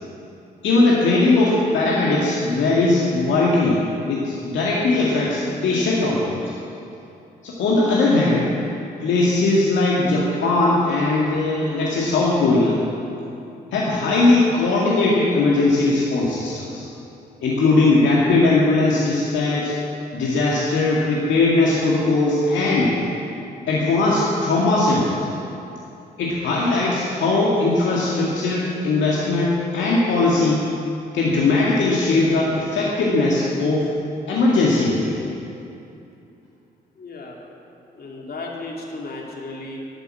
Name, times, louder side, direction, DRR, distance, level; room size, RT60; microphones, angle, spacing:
voice 1, 0.6-6.5 7.4-8.5 9.0-12.8 13.7-16.8 17.4-19.7 20.1-22.9 23.7-25.3 26.2-30.6 31.1-33.9 34.3-35.2, left 2 dB, 65° left, -4 dB, 2.0 m, -19 dB
voice 2, 37.0-37.4 37.9-39.8, left 2 dB, 50° left, -1 dB, 2.6 m, -34 dB
13.0 x 11.5 x 7.5 m, 2.8 s
hypercardioid pair, 45°, 21 cm